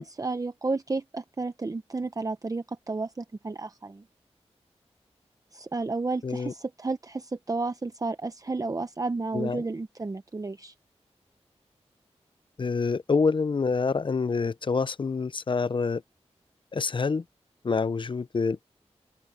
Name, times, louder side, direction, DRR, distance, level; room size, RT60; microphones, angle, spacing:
voice 1, 0.0-4.0 5.5-10.7, right 3 dB, 30° right, 0.7 m, -32 dB
voice 2, 12.6-16.0 16.7-17.2 17.6-18.6, left 4 dB, 45° left, 0.5 m, -26 dB
open air
wide cardioid pair, 65°, 11 cm